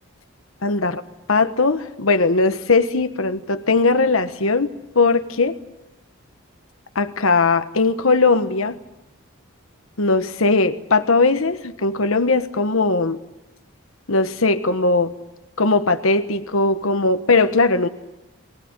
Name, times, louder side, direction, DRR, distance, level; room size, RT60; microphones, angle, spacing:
voice 1, 0.6-1.0 1.3-5.6 6.9-8.8 10.0-13.2 14.1-15.1 15.6-17.9, left 3 dB, 75° left, 9 dB, 1.3 m, -19 dB
24.0 x 18.0 x 9.7 m, 0.94 s
head